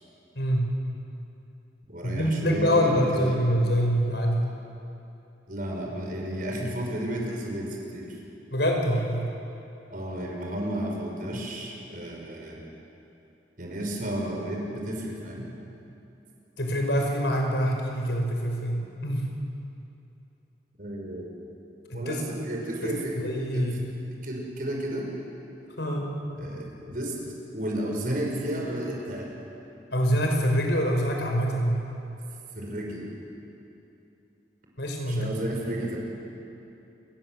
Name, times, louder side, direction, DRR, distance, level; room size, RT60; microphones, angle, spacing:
voice 1, 0.3-0.7 2.0-4.5 8.5-9.3 16.6-19.3 21.9-22.2 22.8-24.0 25.8-26.1 29.9-31.9 34.8-35.5, equal, 70° left, 1 dB, 5.4 m, -25 dB
voice 2, 1.9-3.4 5.5-8.1 9.9-12.6 13.6-15.5 20.8-21.3 21.9-23.2 23.5-23.7 24.2-25.1 26.4-27.2 27.5-29.3 32.5-33.1 35.1-36.0, right 1 dB, 50° right, 0 dB, 5.9 m, -32 dB
29.0 x 22.0 x 7.8 m, 2.8 s
head